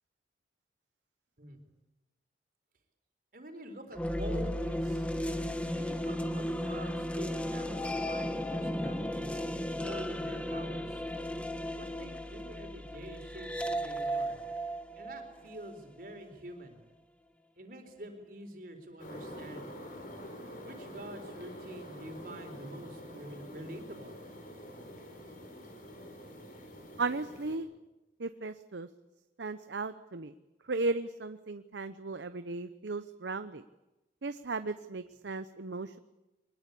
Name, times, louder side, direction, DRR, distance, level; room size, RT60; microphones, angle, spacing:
voice 1, 3.3-5.1 5.6-11.0 11.7-14.4 15.0-16.8 17.6-19.7 20.6-24.2, right 1 dB, 50° right, 5 dB, 4.3 m, -46 dB
sound 1, 3.9-16.1, equal, 5° left, 1.3 m, -35 dB
sound 2, 19.0-27.6, equal, 50° left, 4.8 m, -47 dB
voice 2, 27.0-27.7 28.2-28.9 29.4-30.3 30.7-33.6 34.2-36.0, right 3 dB, 85° right, 11 dB, 0.8 m, -36 dB
23.5 x 20.5 x 8.4 m, 1.0 s
head